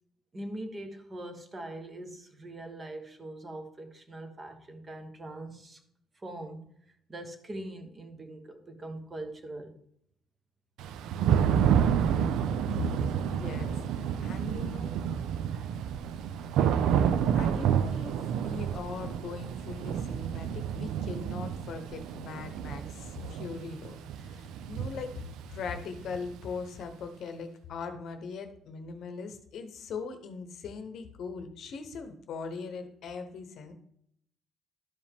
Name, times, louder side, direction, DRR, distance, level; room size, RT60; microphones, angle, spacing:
voice 1, 0.3-5.8 6.2-6.7 7.1-9.8, right 1 dB, 20° right, 6 dB, 0.9 m, -42 dB
Thunder / Rain, 10.8-26.6, right 8 dB, 80° right, 0.4 m, -29 dB
voice 2, 12.6-15.0 17.3-25.1 25.5-33.7, left 5 dB, 50° left, 7 dB, 0.9 m, -40 dB
12.0 x 5.1 x 3.5 m, 0.72 s
cardioid pair, 170°, 0 cm